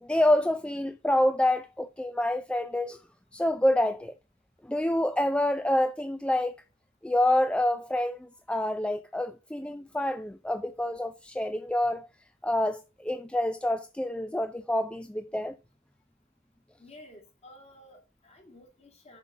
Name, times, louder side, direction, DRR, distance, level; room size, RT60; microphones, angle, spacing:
voice 1, 0.0-3.0 3.3-4.2 4.6-6.6 7.0-12.1 12.4-15.6, left 1 dB, 5° left, 0.3 m, -27 dB
voice 2, 16.8-19.2, left 1 dB, 30° left, 2.5 m, -52 dB
6.6 x 5.4 x 5.1 m
head